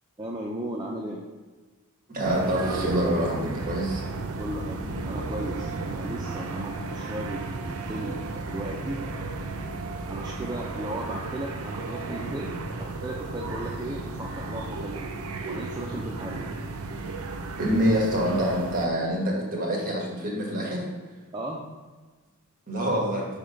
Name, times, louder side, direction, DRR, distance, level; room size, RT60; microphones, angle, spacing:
voice 1, 0.2-1.2 4.4-9.0 10.1-15.1 15.4-16.4 21.3-21.7, right 1 dB, 20° right, -2 dB, 0.5 m, -36 dB
voice 2, 2.1-4.0 17.6-20.9 22.7-23.3, equal, 40° right, -2 dB, 1.5 m, -26 dB
sound 1, 2.2-18.9, right 3 dB, 75° right, 0.5 m, -34 dB
5.4 x 3.6 x 5.1 m, 1.3 s
head